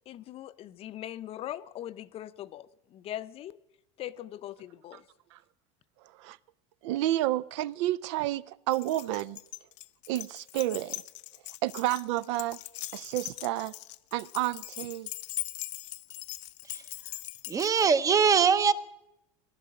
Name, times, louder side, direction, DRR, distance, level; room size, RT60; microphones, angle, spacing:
voice 1, 0.1-3.6 4.0-5.0, left 12 dB, 40° left, 0.6 m, -41 dB
voice 2, 6.8-9.4 10.1-11.0 11.6-12.6 12.9-13.7 14.1-15.1, right 15 dB, 80° right, 0.5 m, -30 dB
Keys jangling, 8.7-17.9, left 16 dB, 85° left, 0.6 m, -41 dB
voice 3, 17.5-18.7, right 6 dB, 20° right, 0.7 m, -22 dB
16.5 x 11.5 x 7.6 m
supercardioid pair, 130°, 15 cm